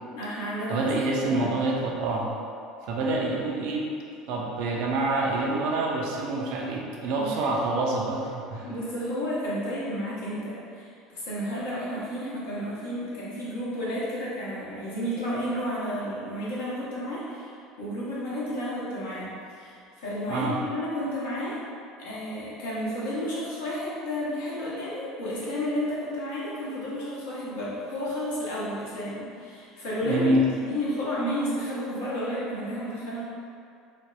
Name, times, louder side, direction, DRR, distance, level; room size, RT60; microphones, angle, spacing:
voice 1, 0.1-0.9 1.2-1.5 7.2-7.5 8.6-17.5 17.8-21.6 22.0-30.3 30.6-33.2, equal, 70° left, -8 dB, 0.8 m, -32 dB
voice 2, 0.7-2.3 2.9-3.9 4.3-8.7 20.3-20.6 30.0-30.5, right 2 dB, 60° right, -1 dB, 0.4 m, -27 dB
3.3 x 2.1 x 2.5 m, 2.4 s
figure-of-eight pair, 65°, 0 cm